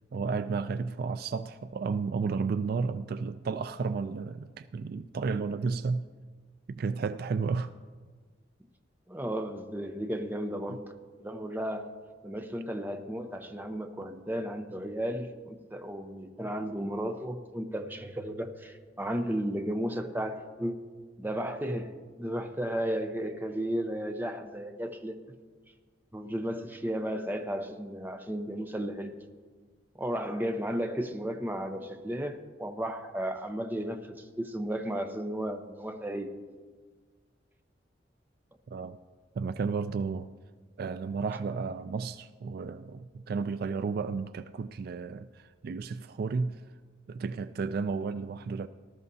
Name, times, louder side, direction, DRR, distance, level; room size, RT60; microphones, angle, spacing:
voice 1, 0.1-6.1 6.7-7.7 10.7-10.8 38.7-39.0 39.4-40.3 40.8-46.6 47.1-48.7, right 4 dB, 55° right, 12 dB, 0.3 m, -32 dB
voice 2, 9.1-10.9 11.2-11.9 12.2-20.9 21.2-25.2 26.1-29.1 29.9-36.3, equal, 10° right, 6 dB, 0.7 m, -34 dB
19.5 x 12.5 x 2.7 m, 1.5 s
head